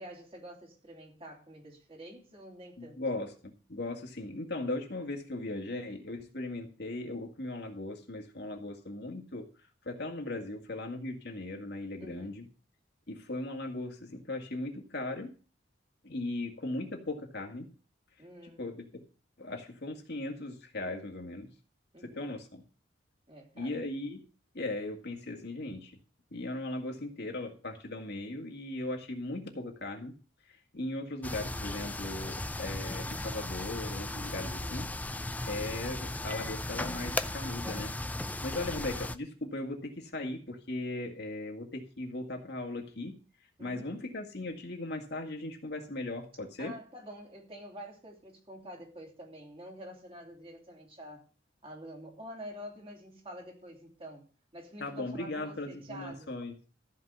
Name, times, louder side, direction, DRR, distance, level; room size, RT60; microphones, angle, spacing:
voice 1, 0.0-3.0 12.0-12.5 18.2-18.6 21.9-22.3 23.3-23.8 43.6-44.0 46.6-51.2 51.6-56.3, equal, 30° right, 3.1 m, -47 dB
voice 2, 2.8-9.5 9.9-12.5 13.1-15.3 16.0-17.7 18.6-19.0 19.4-21.5 22.0-22.6 23.6-24.2 24.5-25.9 26.3-30.1 30.5-34.9 35.5-43.2 43.6-46.8 54.8-56.5, left 2 dB, 60° left, 2.1 m, -38 dB
sound 1, 31.2-39.2, left 1 dB, 10° left, 0.5 m, -36 dB
14.5 x 5.1 x 6.8 m
head